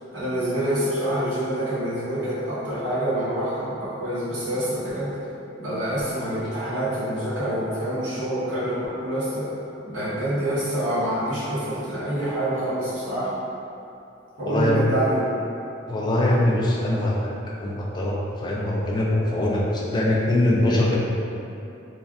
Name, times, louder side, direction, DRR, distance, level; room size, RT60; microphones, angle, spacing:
voice 1, 0.1-5.1 5.6-9.5 9.8-13.3 14.4-15.5, right 1 dB, 75° right, -12 dB, 1.1 m, -26 dB
voice 2, 14.5-14.8 15.9-17.3 17.6-21.0, left 1 dB, 25° left, -4 dB, 0.3 m, -22 dB
3.1 x 2.4 x 2.4 m, 2.7 s
head